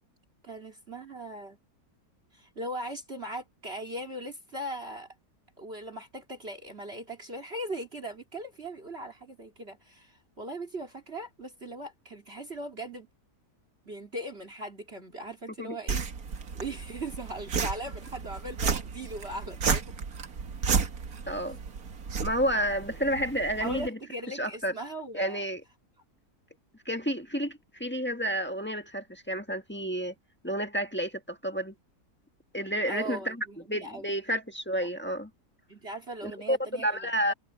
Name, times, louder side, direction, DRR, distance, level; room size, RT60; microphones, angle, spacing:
voice 1, 0.4-1.6 2.3-5.1 5.6-13.1 13.9-16.1 16.5-19.9 21.2-21.4 23.6-25.4 32.9-34.1 34.8-34.9 35.7-37.3, right 1 dB, 40° right, 3.1 m, -39 dB
sound 1, 15.9-23.9, right 5 dB, 60° right, 1.9 m, -33 dB
voice 2, 21.3-21.6 22.2-24.0 24.3-24.7 25.1-25.6 26.8-30.1 30.4-31.7 32.5-35.3 36.2-37.3, equal, 5° left, 1.3 m, -30 dB
omnidirectional pair, 1.8 m